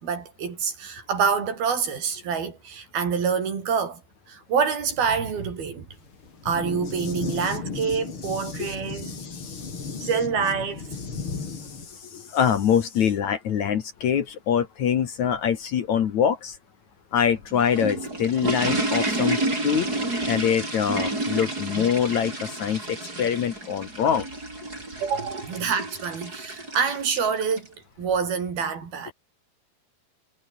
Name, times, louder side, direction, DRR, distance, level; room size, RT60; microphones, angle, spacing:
voice 1, 0.0-4.0 4.3-5.9 6.4-9.2 10.0-10.9 25.0-27.7 28.0-29.1, right 6 dB, 70° right, 6.2 m, -26 dB
sound 1, 6.0-11.9, left 4 dB, 35° left, 4.1 m, -35 dB
voice 2, 9.0-10.1 11.1-16.6 17.1-19.9 20.3-24.3, left 8 dB, 55° left, 2.6 m, -25 dB
sound 2, 17.4-27.7, right 2 dB, 20° right, 8.2 m, -30 dB
omnidirectional pair, 4.4 m